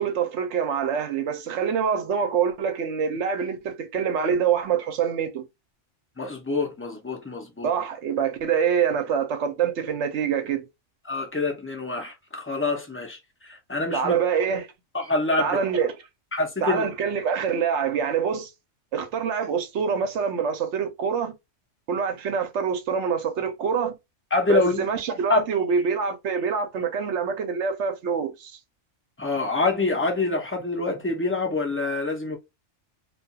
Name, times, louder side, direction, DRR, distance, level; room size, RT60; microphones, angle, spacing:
voice 1, 0.0-5.5 7.6-10.7 13.9-14.7 15.4-16.0 16.6-18.5 18.9-21.3 21.9-23.9 24.5-28.6, right 7 dB, 70° right, 0.9 m, -25 dB
voice 2, 6.2-7.7 11.1-14.2 14.9-15.6 16.3-16.8 24.3-24.8 25.3-25.4 29.2-32.4, left 3 dB, 15° left, 0.4 m, -26 dB
2.4 x 2.3 x 2.6 m
omnidirectional pair, 1.3 m